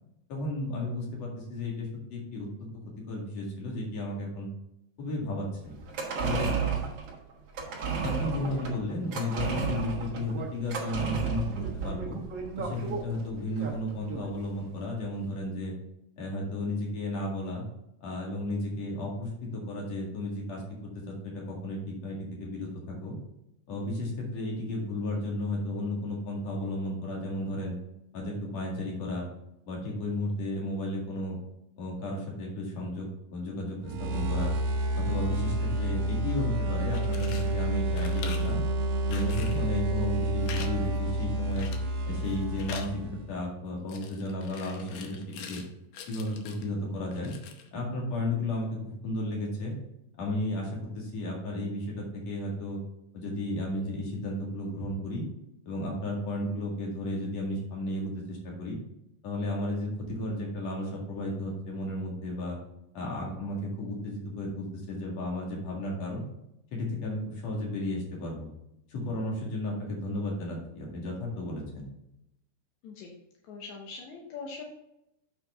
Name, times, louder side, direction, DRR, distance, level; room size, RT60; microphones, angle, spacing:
voice 1, 0.3-2.7 3.1-4.5 5.0-5.7 6.2-6.5 8.0-12.2 12.6-15.7 16.2-17.7 18.0-20.6 20.9-23.2 23.7-27.8 28.1-29.3 29.7-31.4 31.8-34.6 34.9-38.6 39.1-41.7 42.0-45.2 45.5-45.6 46.1-47.3 47.7-48.8 49.0-49.7 50.2-52.8 53.1-55.2 55.7-58.8 59.2-62.6 62.9-66.2 66.7-68.5 68.9-71.9, left 1 dB, 50° left, -2 dB, 2.8 m, -33 dB
sound 1, 5.8-14.4 14.7-14.8, right 5 dB, 55° right, 1.8 m, -33 dB
voice 2, 8.1-8.7 72.8-73.1 73.5-74.6, left 4 dB, 70° left, -1 dB, 1.8 m, -43 dB
sound 2, 33.8-43.3, right 1 dB, 75° right, 2.5 m, -29 dB
sound 3, 36.8-37.5 37.9-38.5 39.1-39.7 40.4-40.7 41.0-41.1 41.6-42.0 42.3-42.9 43.9-45.7 45.9-46.7 47.1-47.7, left 6 dB, 90° left, 1.5 m, -43 dB
7.8 x 5.8 x 3.6 m, 0.84 s
omnidirectional pair, 4.5 m